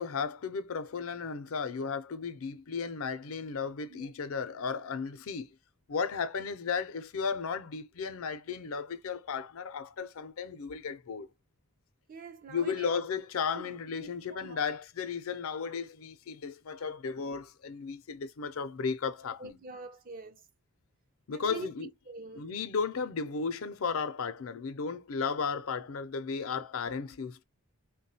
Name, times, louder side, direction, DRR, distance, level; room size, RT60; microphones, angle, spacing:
voice 1, 0.0-5.5 5.9-11.3 12.5-19.6 21.3-21.9 22.3-27.4, left 5 dB, 75° left, 0.5 m, -34 dB
voice 2, 12.1-12.9 13.5-14.6 19.4-20.4 21.3-21.7 22.1-22.5, right 4 dB, 40° right, 0.4 m, -45 dB
3.5 x 2.2 x 2.7 m
head